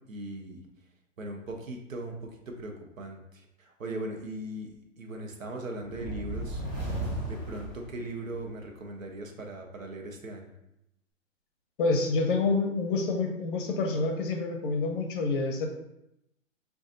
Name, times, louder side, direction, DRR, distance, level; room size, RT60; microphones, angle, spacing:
voice 1, 0.1-0.6 1.2-4.7 5.0-6.6 7.3-10.5, right 1 dB, 90° right, 2 dB, 0.8 m, -39 dB
sound 1, 5.9-8.6, right 1 dB, 30° right, 1.3 m, -35 dB
voice 2, 11.8-15.7, left 3 dB, 45° left, 3 dB, 0.6 m, -27 dB
4.9 x 2.4 x 2.5 m, 0.83 s
hypercardioid pair, 130°, 39 cm